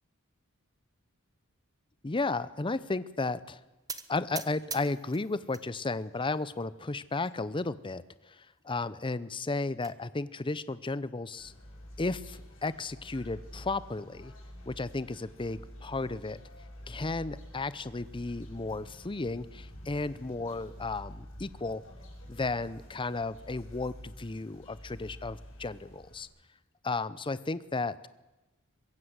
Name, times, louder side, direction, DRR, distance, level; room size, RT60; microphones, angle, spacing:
voice 1, 2.0-3.6 4.1-11.5 12.0-14.3 14.7-16.4 16.9-21.8 22.3-26.3 26.8-28.1, left 3 dB, 25° left, 16 dB, 0.7 m, -34 dB
sound 1, 3.9-5.7 6.1-6.7 7.2-7.4 7.6-7.7 8.1-8.2 9.3-10.0, right 6 dB, 15° right, 1.0 m, -43 dB
sound 2, 11.4-26.2, equal, 70° left, 7.6 m, -48 dB
23.5 x 15.5 x 8.1 m, 1.1 s
head